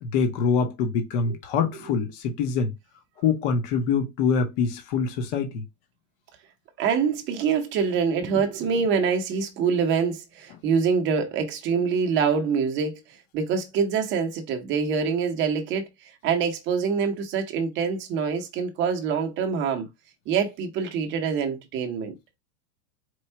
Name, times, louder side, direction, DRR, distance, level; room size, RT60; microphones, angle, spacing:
voice 1, 0.0-2.7 3.2-5.6, left 5 dB, 35° left, 0.9 m, -24 dB
voice 2, 6.8-19.9 20.3-22.1, right 6 dB, 25° right, 0.8 m, -25 dB
4.5 x 2.3 x 4.3 m
supercardioid pair, 160°, 49 cm